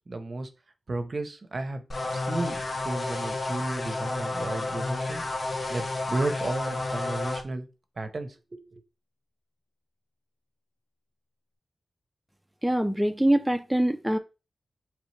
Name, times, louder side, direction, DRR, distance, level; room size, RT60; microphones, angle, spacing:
voice 1, 0.1-0.5 0.9-1.8 2.1-5.3 5.7-7.7 8.0-8.8, right 2 dB, 55° right, 0.7 m, -33 dB
sound 1, 1.9-7.4, left 2 dB, 55° left, 0.8 m, -31 dB
voice 2, 12.6-14.2, right 1 dB, 5° right, 0.4 m, -24 dB
4.0 x 3.2 x 3.2 m
cardioid pair, 50°, 0 cm